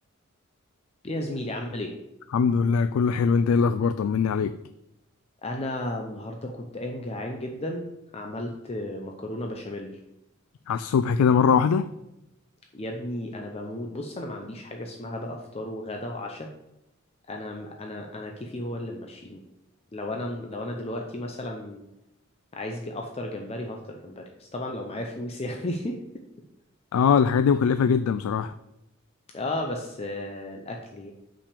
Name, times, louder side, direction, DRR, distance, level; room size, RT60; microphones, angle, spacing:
voice 1, 1.0-1.9 5.4-7.9 8.1-9.9 12.7-16.5 17.3-19.4 19.9-21.9 22.5-26.0 29.3-31.1, left 1 dB, 30° left, 2 dB, 0.7 m, -34 dB
voice 2, 2.3-4.6 10.7-11.9 26.9-28.5, left 6 dB, 80° left, 12 dB, 0.3 m, -21 dB
5.8 x 5.1 x 6.7 m, 0.87 s
head